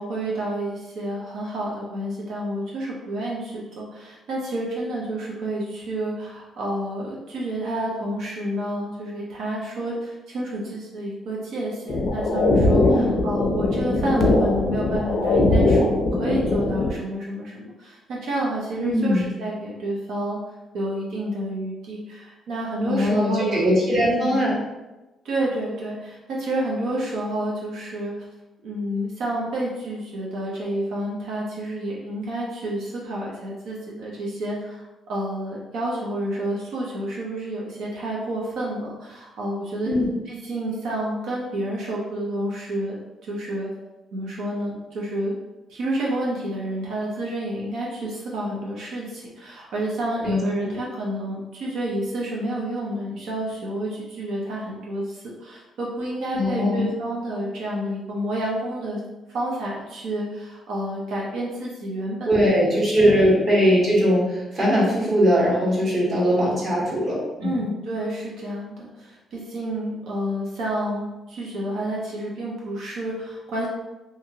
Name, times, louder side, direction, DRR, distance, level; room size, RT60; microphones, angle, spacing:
voice 1, 0.0-20.4 20.7-23.6 24.1-24.5 25.2-28.1 28.6-39.9 40.3-43.0 43.2-43.7 44.1-45.4 45.7-59.0 59.3-62.4 62.7-63.3 67.4-73.7, right 1 dB, 80° right, -4 dB, 0.6 m, -29 dB
sound 1, 11.9-16.9, left 2 dB, 65° left, 0.4 m, -21 dB
voice 2, 18.8-19.2 22.8-24.5 39.8-40.0 50.2-50.8 56.3-56.9 62.3-67.6, equal, 45° right, -6 dB, 1.4 m, -20 dB
2.7 x 2.5 x 2.8 m, 1.0 s
cardioid pair, 90°, 0 cm